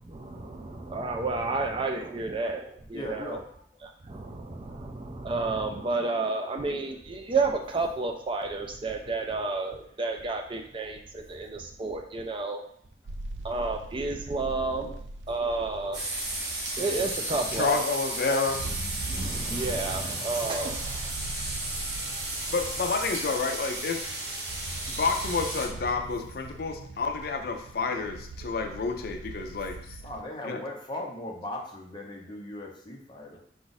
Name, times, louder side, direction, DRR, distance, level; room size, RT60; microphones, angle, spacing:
voice 1, 0.0-3.4 3.8-12.6 13.4-15.0 15.3-16.0 16.8-17.8 19.1-21.1, right 3 dB, 30° right, 4 dB, 0.4 m, -31 dB
voice 2, 2.9-3.4 30.0-33.4, left 1 dB, 25° left, 0 dB, 0.7 m, -38 dB
sound 1, 13.1-30.2, right 2 dB, 90° right, 0.4 m, -41 dB
sound 2, 15.9-25.7, right 2 dB, 70° right, 1.4 m, -34 dB
voice 3, 17.5-18.6 22.5-24.1 24.9-30.0 30.4-30.6, left 4 dB, 55° left, 4 dB, 0.4 m, -29 dB
4.9 x 2.4 x 4.0 m, 0.64 s
head